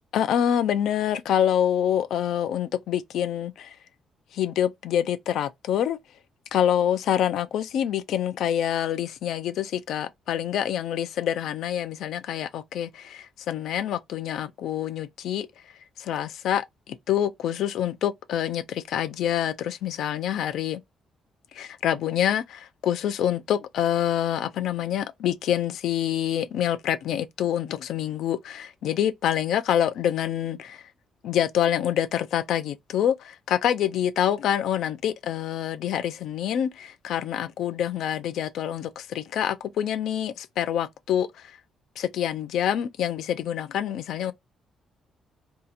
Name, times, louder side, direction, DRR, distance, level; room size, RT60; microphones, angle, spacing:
voice 1, 0.1-3.8 4.3-6.0 6.5-15.5 16.0-20.8 21.5-30.8 31.2-41.6 42.0-44.3, left 10 dB, 80° left, 0.4 m, -26 dB
2.7 x 2.4 x 4.0 m
cardioid pair, 90°, 0 cm